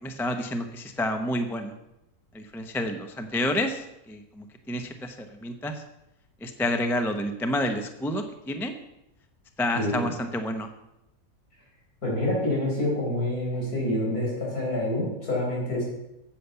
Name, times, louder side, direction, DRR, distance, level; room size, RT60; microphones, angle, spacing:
voice 1, 0.0-1.7 2.3-5.8 6.4-8.7 9.6-10.7, left 1 dB, ahead, 7 dB, 0.6 m, -29 dB
voice 2, 9.7-10.1 12.0-15.8, left 1 dB, 70° left, -3 dB, 5.2 m, -27 dB
10.0 x 8.4 x 6.9 m, 0.89 s
omnidirectional pair, 1.7 m